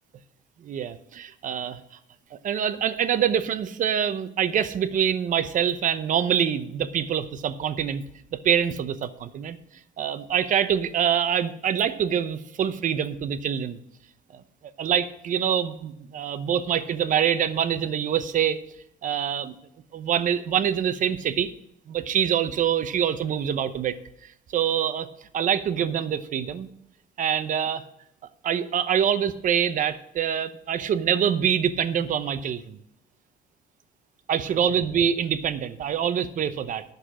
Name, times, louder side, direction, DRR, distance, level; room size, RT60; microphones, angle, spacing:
voice 1, 0.6-1.8 2.3-8.0 8.3-9.6 10.0-13.8 14.8-18.6 19.0-19.5 19.9-21.5 21.9-24.0 24.5-25.1 25.3-26.7 27.2-27.8 28.4-32.8 34.3-36.8, right 8 dB, 50° right, 12 dB, 0.8 m, -25 dB
10.0 x 6.6 x 6.2 m, 0.79 s
cardioid pair, 110°, 17 cm